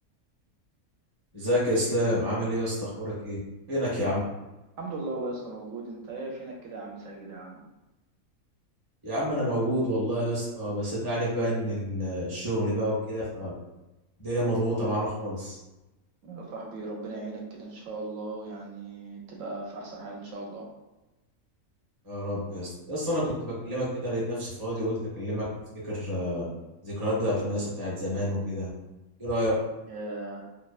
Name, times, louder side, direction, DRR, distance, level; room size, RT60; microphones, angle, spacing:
voice 1, 1.3-3.4 3.7-4.2 9.0-13.5 14.2-15.6 22.0-25.4 25.8-26.4 26.8-28.7 29.2-29.5, equal, 20° right, -7 dB, 0.6 m, -29 dB
voice 2, 4.8-7.6 16.2-20.7 29.9-30.5, right 2 dB, 70° right, -1 dB, 1.0 m, -38 dB
2.8 x 2.1 x 2.3 m, 1.0 s
omnidirectional pair, 1.5 m